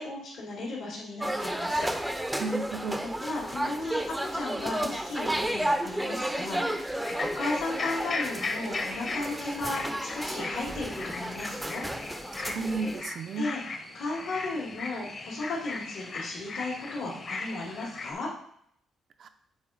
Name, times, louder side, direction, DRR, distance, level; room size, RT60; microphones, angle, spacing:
voice 1, 0.0-1.9 3.0-11.8 12.4-12.5 13.3-13.6 13.9-18.3, left 2 dB, 70° left, -8 dB, 2.3 m, -35 dB
sound 1, 1.2-13.0, right 1 dB, 5° right, 0.6 m, -32 dB
voice 2, 2.4-3.0 12.4-13.5 19.2-19.3, right 3 dB, 55° right, 8 dB, 0.5 m, -33 dB
sound 2, 7.0-18.1, left 3 dB, 45° left, 1.2 m, -37 dB
7.3 x 3.6 x 4.9 m, 0.69 s
cardioid pair, 90°, 0 cm